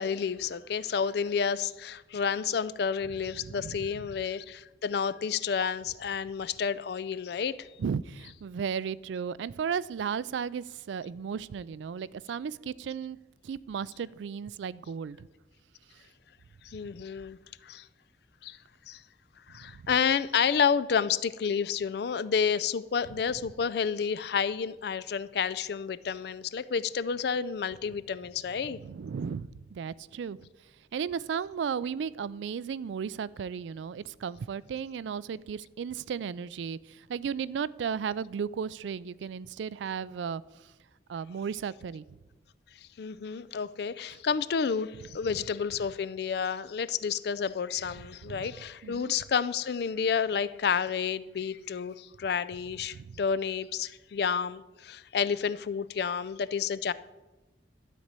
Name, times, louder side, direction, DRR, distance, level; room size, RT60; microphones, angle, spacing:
voice 1, 0.0-7.7 16.6-17.4 17.6-17.8 18.4-18.6 18.9-19.0 19.5-28.8 43.0-56.9, left 6 dB, 60° left, 0.4 m, -30 dB
voice 2, 3.4-3.9 7.8-13.2 13.4-15.3 19.6-19.9 28.6-30.5 30.9-40.4 41.1-42.0 48.3-48.5 48.8-49.1 52.9-53.2, right 7 dB, 80° right, 0.3 m, -35 dB
12.5 x 4.3 x 8.1 m
head